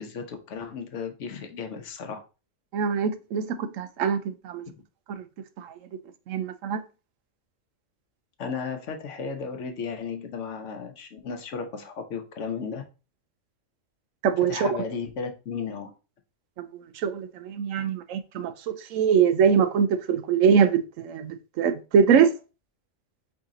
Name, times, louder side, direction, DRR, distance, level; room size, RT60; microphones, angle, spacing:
voice 1, 0.0-2.2 8.4-12.8 14.4-15.9, left 5 dB, 70° left, 1.1 m, -34 dB
voice 2, 2.7-4.6 5.2-5.3 5.6-5.7 6.3-6.8 14.2-14.8 16.6-22.3, right 7 dB, 85° right, 1.0 m, -23 dB
4.8 x 2.8 x 3.7 m
omnidirectional pair, 1.3 m